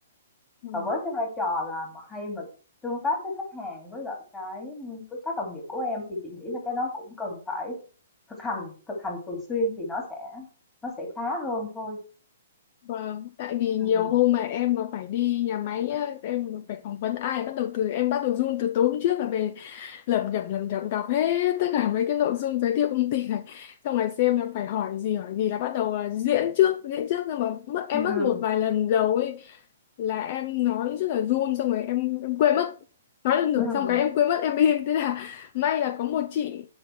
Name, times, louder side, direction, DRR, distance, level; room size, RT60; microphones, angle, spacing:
voice 1, 0.7-2.5 2.8-7.8 8.4-10.5 10.8-12.0 13.8-14.1 27.9-28.4 33.6-34.0, left 2 dB, 10° left, 2.8 m, -31 dB
voice 2, 12.9-29.6 30.0-32.8 33.2-36.7, left 11 dB, 45° left, 0.5 m, -26 dB
9.7 x 5.6 x 4.6 m
hypercardioid pair, 150°, 0 cm